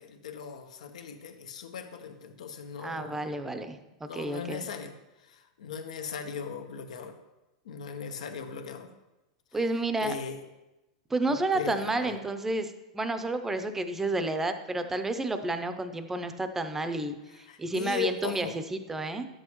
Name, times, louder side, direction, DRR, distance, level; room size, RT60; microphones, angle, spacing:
voice 1, 0.0-3.3 4.1-4.9 5.2-7.2 7.6-8.9 10.0-10.4 11.3-12.2 17.3-18.5, left 6 dB, 85° left, 6 dB, 1.0 m, -38 dB
voice 2, 2.8-4.7 9.5-10.1 11.1-19.3, right 2 dB, 10° right, 9 dB, 0.6 m, -31 dB
11.0 x 7.7 x 3.1 m, 1.0 s
supercardioid pair, 135°, 4 cm